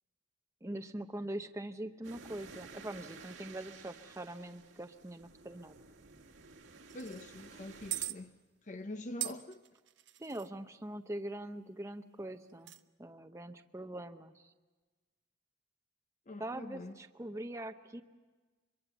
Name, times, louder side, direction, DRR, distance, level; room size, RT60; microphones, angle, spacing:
voice 1, 0.6-5.7 10.2-12.7 13.0-14.5 16.4-18.0, right 1 dB, 15° right, 0.7 m, -43 dB
sound 1, 2.0-8.1, right 4 dB, 80° right, 1.9 m, -53 dB
voice 2, 6.9-8.3 8.7-9.6 16.3-17.0, left 1 dB, 40° left, 0.7 m, -44 dB
sound 2, 6.9-7.2 7.9-8.2 9.2-10.5 12.5-12.8, right 16 dB, 65° right, 0.8 m, -40 dB
24.5 x 22.5 x 7.0 m
head